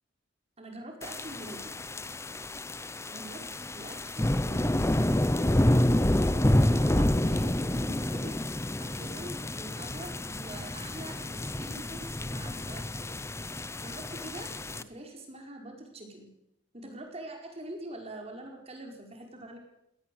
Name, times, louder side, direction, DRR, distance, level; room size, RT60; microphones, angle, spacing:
voice 1, 0.6-1.8 3.1-3.4 3.7-5.9 6.2-8.3 8.7-13.1 13.8-16.3 16.7-19.6, right 1 dB, 35° right, 2 dB, 5.0 m, -44 dB
sound 1, 1.0-14.8, left 1 dB, 15° left, 0.8 m, -28 dB
21.0 x 18.0 x 7.9 m, 0.82 s
head